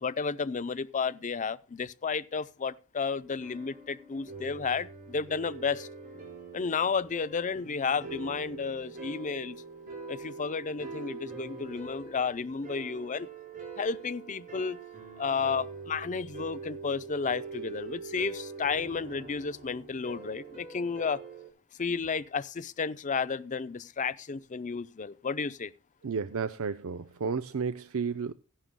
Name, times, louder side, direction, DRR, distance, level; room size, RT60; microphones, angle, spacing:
voice 1, 0.0-5.9 6.5-9.6 10.1-13.3 13.8-14.8 15.2-21.2 21.8-25.7, left 5 dB, 35° left, 0.5 m, -32 dB
sound 1, 3.1-21.5, right 4 dB, 40° right, 4.6 m, -44 dB
voice 2, 26.0-28.3, right 5 dB, 65° right, 0.5 m, -32 dB
15.5 x 11.0 x 2.2 m
head